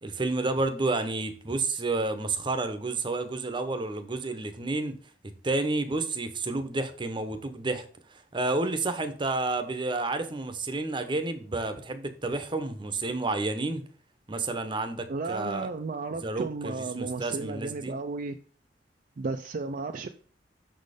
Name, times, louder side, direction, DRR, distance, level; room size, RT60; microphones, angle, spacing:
voice 1, 0.0-4.9 5.4-7.8 8.1-13.8 14.3-15.7 16.2-17.9, right 2 dB, 25° right, 0.8 m, -30 dB
voice 2, 15.1-18.4 19.2-20.1, right 3 dB, 50° right, 0.4 m, -34 dB
6.2 x 4.2 x 4.9 m
head